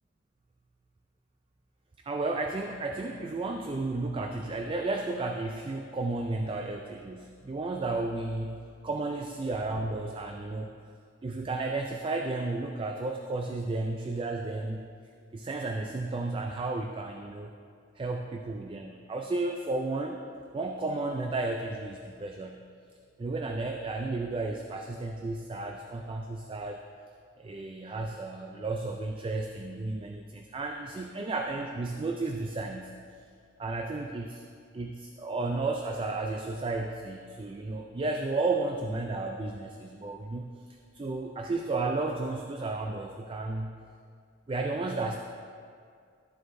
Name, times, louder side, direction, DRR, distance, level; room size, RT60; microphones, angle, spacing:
voice 1, 2.1-10.7 11.2-14.9 15.3-17.5 18.0-20.2 20.5-22.6 23.2-26.8 27.4-33.0 33.6-34.4 34.7-40.5 40.9-43.8 44.5-45.2, right 3 dB, 25° right, 3 dB, 0.3 m, -33 dB
12.0 x 7.9 x 2.6 m, 2.2 s
head